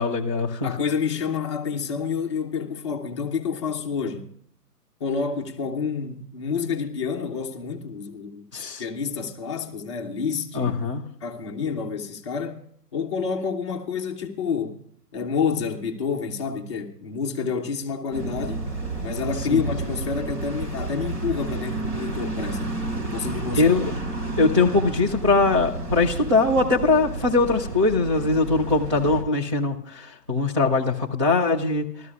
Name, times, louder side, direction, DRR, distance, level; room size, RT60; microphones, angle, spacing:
voice 1, 0.0-0.7 8.5-8.8 10.5-11.0 19.5-19.6 23.5-23.9 24.4-31.8, left 3 dB, 20° right, 0.5 m, -21 dB
voice 2, 0.6-4.3 5.0-8.4 8.8-10.7 11.2-12.6 12.9-14.8 15.1-18.7 19.0-22.6 23.0-23.7, left 5 dB, 20° left, 0.8 m, -28 dB
sound 1, 18.1-29.2, right 2 dB, 45° right, 3.8 m, -31 dB
26.5 x 13.5 x 2.3 m
hypercardioid pair, 155°, 48 cm